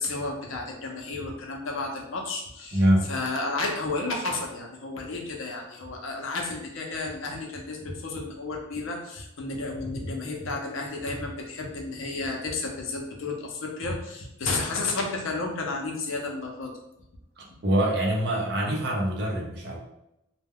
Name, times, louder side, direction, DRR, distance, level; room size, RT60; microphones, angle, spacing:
voice 1, 0.0-2.8 3.1-16.7, left 3 dB, 70° left, 1 dB, 0.6 m, -32 dB
voice 2, 2.7-3.1 17.4-19.8, right 1 dB, 50° right, -1 dB, 0.6 m, -24 dB
2.2 x 2.2 x 3.5 m, 0.84 s
head